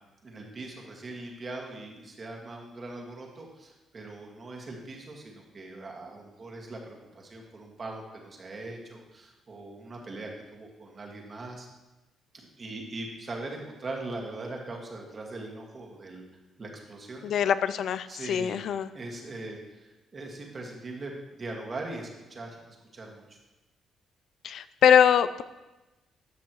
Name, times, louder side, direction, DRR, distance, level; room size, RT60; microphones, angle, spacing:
voice 1, 0.2-11.7 12.3-16.2 16.6-17.3 18.1-18.6 18.9-22.6 22.9-23.4, right 2 dB, 40° right, 0 dB, 1.9 m, -41 dB
voice 2, 17.2-18.9 24.4-25.4, left 8 dB, 65° left, 14 dB, 0.3 m, -23 dB
12.5 x 6.1 x 3.1 m, 1.1 s
cardioid pair, 90°, 0 cm